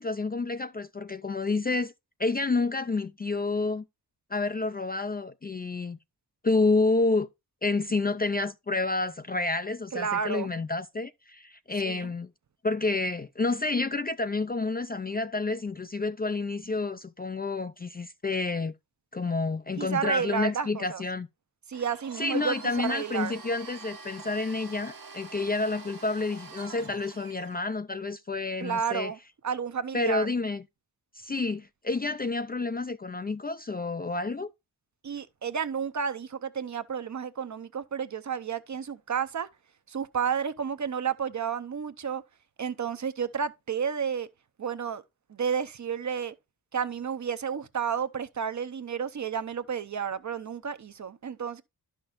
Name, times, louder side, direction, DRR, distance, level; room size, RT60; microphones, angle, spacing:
voice 1, 0.0-1.9 2.2-3.8 4.3-6.0 6.4-7.3 7.6-12.3 12.6-18.7 19.1-21.3 22.2-29.1 29.9-30.6 31.2-34.5, left 3 dB, 25° left, 0.3 m, -29 dB
voice 2, 9.9-10.5 11.9-12.1 19.8-21.0 21.7-22.5 22.9-23.3 28.6-29.2 29.4-30.3 35.0-39.5 39.9-42.2 42.6-44.3 44.6-45.0 45.3-46.3 46.7-51.6, right 7 dB, 45° right, 0.7 m, -31 dB
Domestic sounds home sounds, 21.7-27.6, right 5 dB, 65° right, 1.2 m, -46 dB
11.5 x 5.9 x 2.5 m
wide cardioid pair, 90°, 39 cm